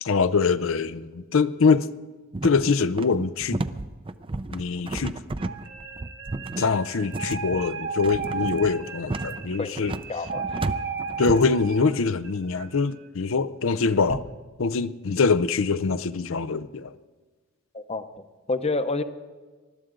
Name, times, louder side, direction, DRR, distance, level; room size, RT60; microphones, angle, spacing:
voice 1, 0.0-1.9 2.4-3.6 4.5-5.2 6.6-10.0 11.2-14.2 14.6-17.0, left 4 dB, 70° left, 0.6 m, -24 dB
sound 1, 2.3-11.5, right 2 dB, 25° right, 0.5 m, -32 dB
sound 2, 5.4-12.7, right 5 dB, 55° right, 1.2 m, -35 dB
voice 2, 9.6-10.6 17.7-19.0, left 3 dB, 30° left, 0.8 m, -30 dB
20.5 x 13.0 x 3.8 m
head